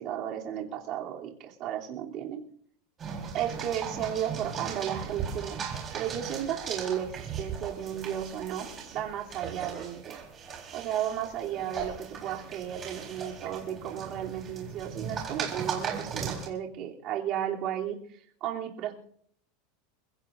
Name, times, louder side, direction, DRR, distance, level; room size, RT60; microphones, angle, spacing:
voice 1, 0.0-2.4 3.3-8.7 8.9-10.1 10.7-18.9, right 10 dB, 35° right, -2 dB, 3.0 m, -34 dB
sound 1, 3.0-16.5, right 6 dB, 20° right, 4.1 m, -38 dB
29.5 x 16.5 x 2.6 m, 0.63 s
supercardioid pair, 175°, 0 cm